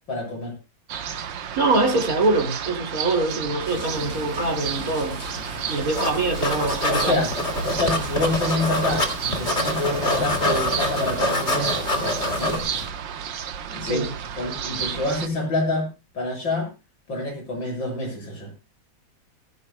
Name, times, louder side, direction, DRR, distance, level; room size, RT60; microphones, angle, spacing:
voice 1, 0.1-0.5 6.9-7.3 7.6-12.6 13.7-14.1 14.4-15.9 16.1-16.7 17.1-18.5, left 2 dB, 70° left, 1 dB, 8.2 m, -27 dB
sound 1, 0.9-15.3, right 8 dB, 70° right, 1.7 m, -32 dB
voice 2, 1.6-5.2 5.7-7.2 13.8-14.1, right 2 dB, 45° right, 4 dB, 3.0 m, -24 dB
sound 2, 3.7-12.9, left 2 dB, 50° left, 8.3 m, -37 dB
sound 3, 5.9-6.1 6.4-9.1 9.3-12.6, left 1 dB, 35° left, 2.6 m, -25 dB
20.5 x 15.5 x 2.2 m, 0.29 s
omnidirectional pair, 2.1 m